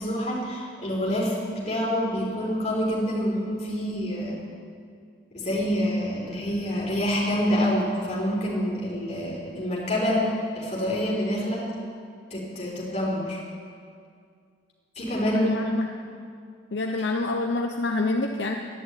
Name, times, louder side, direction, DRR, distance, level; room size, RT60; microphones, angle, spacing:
voice 1, 0.0-4.4 5.3-10.3 10.5-11.7 12.3-13.4 15.0-15.5, equal, 35° left, -4 dB, 3.9 m, -27 dB
voice 2, 15.3-15.9 16.7-18.6, left 2 dB, 65° left, 2 dB, 0.7 m, -27 dB
11.0 x 11.0 x 9.2 m, 2.3 s
head